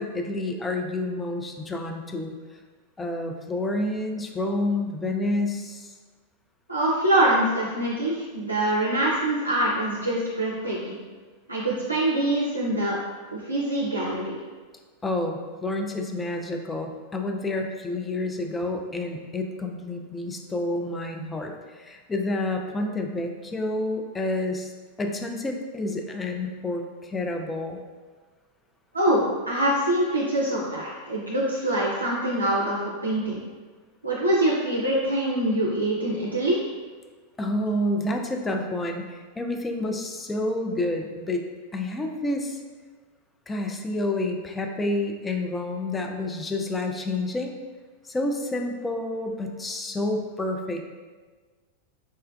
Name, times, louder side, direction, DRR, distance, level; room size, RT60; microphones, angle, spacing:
voice 1, 0.0-2.4 3.0-5.9 15.0-24.7 25.0-27.8 37.4-41.4 41.7-42.6 43.5-47.5 48.0-50.8, left 2 dB, 15° left, 3 dB, 0.3 m, -29 dB
voice 2, 6.7-11.0 11.5-13.0 13.3-14.3 28.9-33.4 34.0-36.6, right 1 dB, 80° right, -5 dB, 0.4 m, -24 dB
4.2 x 2.2 x 2.3 m, 1.4 s
figure-of-eight pair, 90°, 0 cm